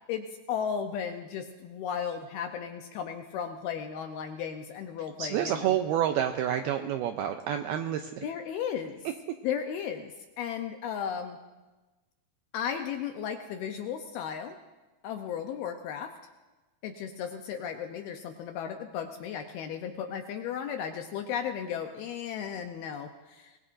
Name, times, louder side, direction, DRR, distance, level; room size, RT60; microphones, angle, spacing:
voice 1, 0.1-5.8 8.2-9.0 9.4-11.4 12.5-14.6 15.0-16.1 16.8-23.6, left 8 dB, 75° left, 5 dB, 2.3 m, -35 dB
voice 2, 5.2-8.2, right 10 dB, 85° right, 6 dB, 2.2 m, -28 dB
25.5 x 20.5 x 2.6 m, 1.2 s
omnidirectional pair, 5.1 m